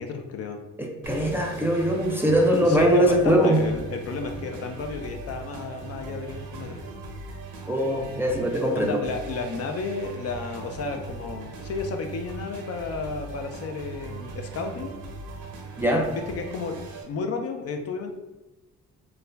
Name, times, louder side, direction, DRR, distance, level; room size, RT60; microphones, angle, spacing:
voice 1, 0.0-0.6 2.5-6.8 8.8-14.9 16.1-16.8 17.0-18.2, left 4 dB, 55° left, 5 dB, 0.4 m, -32 dB
voice 2, 0.8-3.6 7.7-9.0 15.8-16.1, equal, 10° right, 0 dB, 0.4 m, -21 dB
sound 1, 1.0-17.0, right 3 dB, 75° right, 0.7 m, -39 dB
2.3 x 2.1 x 3.2 m, 1.0 s
cardioid pair, 90°, 30 cm